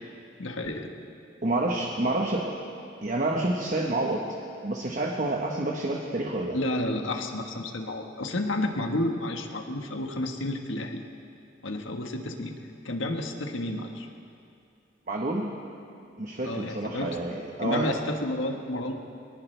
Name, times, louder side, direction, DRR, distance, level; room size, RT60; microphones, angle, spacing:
voice 1, 0.4-0.9 6.5-11.0 11.6-12.5 12.8-14.1 16.4-17.2 17.6-18.9, left 1 dB, 85° left, 3 dB, 1.4 m, -31 dB
voice 2, 1.4-2.6 3.0-4.3 4.6-6.6 15.1-15.6 16.2-18.0, right 2 dB, 40° right, 0 dB, 1.1 m, -28 dB
22.5 x 19.0 x 3.3 m, 2.5 s
head